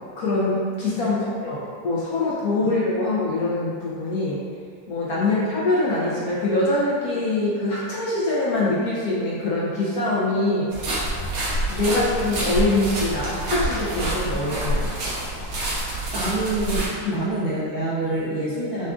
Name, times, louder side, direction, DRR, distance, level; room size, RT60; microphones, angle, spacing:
voice 1, 0.2-4.4 4.9-11.0 11.7-14.9 17.0-17.3, left 2 dB, 65° left, -7 dB, 1.0 m, -24 dB
voice 2, 0.9-1.4 2.6-2.7 5.2-5.3 15.9-18.9, right 2 dB, 55° right, -11 dB, 0.6 m, -27 dB
sound 1, 10.7-16.9, right 1 dB, 80° right, 1.7 m, -27 dB
6.7 x 2.5 x 2.4 m, 2.3 s
omnidirectional pair, 2.1 m